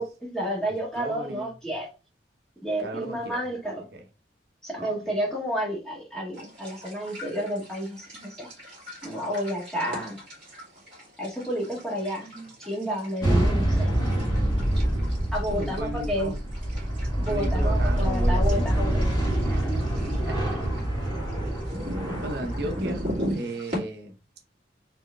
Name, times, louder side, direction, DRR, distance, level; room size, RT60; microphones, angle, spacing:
voice 1, 0.0-1.9 2.6-3.9 4.6-8.5 9.0-10.2 11.2-13.9 14.6-14.7 15.3-16.4 17.2-19.1, equal, ahead, 1.6 m, -31 dB
voice 2, 1.0-1.5 2.8-3.4 3.7-4.0 4.8-5.0 15.5-16.5 17.2-19.0 20.2-20.8 21.4-21.5 22.1-23.0 23.3-24.1, right 1 dB, 55° right, 0.7 m, -35 dB
sound 1, 6.3-23.8, equal, 30° right, 2.5 m, -39 dB
sound 2, 13.2-23.3, right 1 dB, 20° left, 1.6 m, -26 dB
4.5 x 3.1 x 3.4 m
head